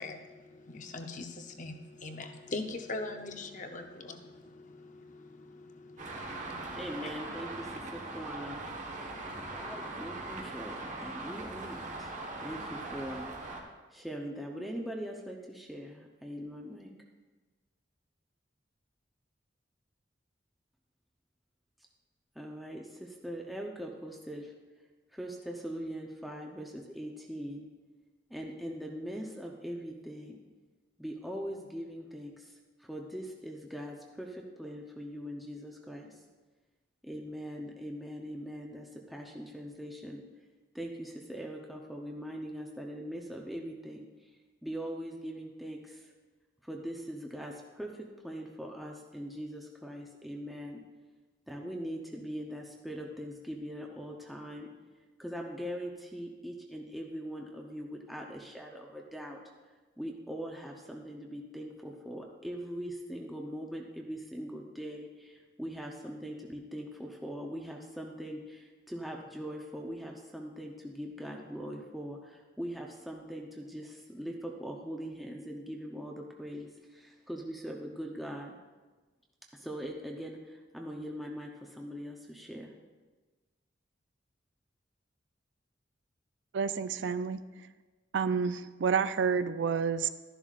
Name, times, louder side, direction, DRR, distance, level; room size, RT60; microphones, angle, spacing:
voice 1, 0.0-6.8 9.0-9.7, left 2 dB, 45° left, 5 dB, 0.8 m, -42 dB
Traffic noise roadway noise, 6.0-13.6, right 2 dB, 40° right, 1.2 m, -41 dB
voice 2, 6.7-8.6 9.5-12.1 12.4-13.3 13.9-16.9 22.3-27.7 28.3-30.4 31.0-36.2 37.0-40.2 40.7-46.1 46.6-50.8 51.5-54.7 55.2-59.4 60.0-78.6 79.5-82.7, equal, ahead, -1 dB, 0.7 m, -41 dB
voice 3, 86.5-87.7 88.1-90.1, right 6 dB, 80° right, 12 dB, 0.4 m, -29 dB
12.0 x 11.0 x 2.4 m, 1.3 s
head